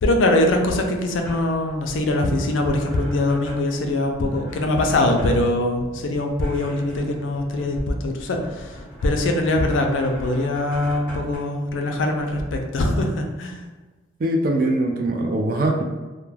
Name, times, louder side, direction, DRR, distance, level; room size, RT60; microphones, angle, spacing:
voice 1, 0.0-8.8 9.0-13.7, left 1 dB, 75° left, 3 dB, 0.4 m, -22 dB
sound 1, 0.9-11.4, equal, 10° left, 0.7 m, -40 dB
voice 2, 14.2-15.8, right 1 dB, 45° right, 2 dB, 0.3 m, -22 dB
2.2 x 2.1 x 3.2 m, 1.3 s
head